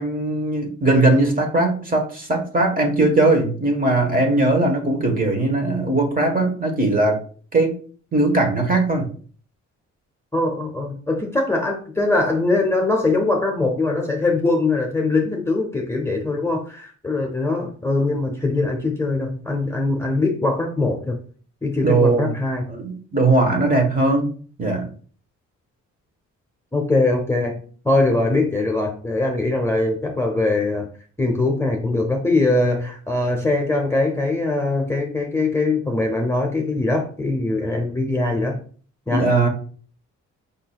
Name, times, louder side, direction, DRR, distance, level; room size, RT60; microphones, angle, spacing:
voice 1, 0.0-7.2 7.5-7.7 8.1-9.1 21.8-22.3 22.7-24.3 24.6-24.9 39.1-39.5, right 2 dB, 30° right, 3 dB, 1.3 m, -19 dB
voice 2, 10.3-21.2 21.6-22.7 26.7-30.9 31.2-38.6 39.1-39.3, left 2 dB, 10° left, 1 dB, 0.8 m, -22 dB
5.4 x 3.9 x 2.3 m, 0.43 s
cardioid pair, 90°, 30 cm